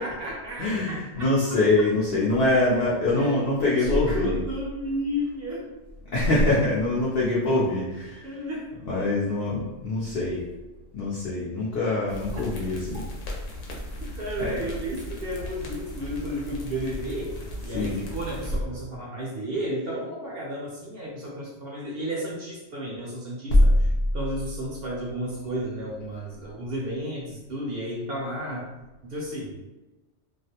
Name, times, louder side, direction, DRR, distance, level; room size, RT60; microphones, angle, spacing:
voice 1, 0.0-1.3 2.6-5.6 8.2-8.7 14.2-23.7 24.1-28.7 29.0-29.6, equal, 65° right, -4 dB, 0.7 m, -32 dB
voice 2, 0.6-4.4 6.1-8.4 8.8-10.4 10.9-13.0 14.4-14.6 17.7-18.0, left 2 dB, 60° left, -6 dB, 0.6 m, -24 dB
sound 1, 12.1-18.6, equal, 85° left, 1.0 m, -37 dB
2.4 x 2.0 x 2.7 m, 1.1 s
omnidirectional pair, 1.3 m